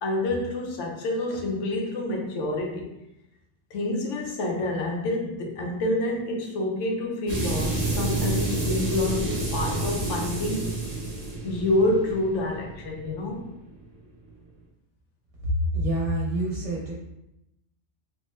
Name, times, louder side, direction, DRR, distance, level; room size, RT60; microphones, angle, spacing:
voice 1, 0.0-2.9 3.7-10.7 11.4-13.5, left 2 dB, 75° left, 1 dB, 1.0 m, -27 dB
sound 1, 7.3-13.8, right 2 dB, 40° right, 0.7 m, -29 dB
voice 2, 15.4-16.9, equal, 65° right, -4 dB, 0.9 m, -26 dB
3.1 x 2.0 x 3.1 m, 0.88 s
omnidirectional pair, 1.3 m